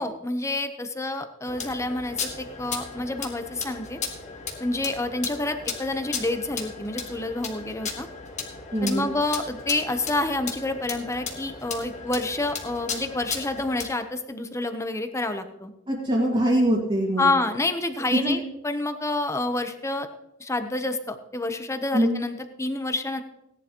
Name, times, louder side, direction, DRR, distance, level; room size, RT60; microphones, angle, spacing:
voice 1, 0.0-4.0 4.6-8.1 8.8-15.7 17.2-20.1 20.4-23.2, left 2 dB, 15° left, 8 dB, 0.8 m, -28 dB
sound 1, 1.4-13.9, left 5 dB, 40° left, 1.6 m, -36 dB
voice 2, 8.7-9.1 15.9-17.3 18.1-18.4 21.9-22.2, right 1 dB, 30° right, -4 dB, 2.0 m, -23 dB
17.0 x 10.5 x 3.0 m, 0.90 s
head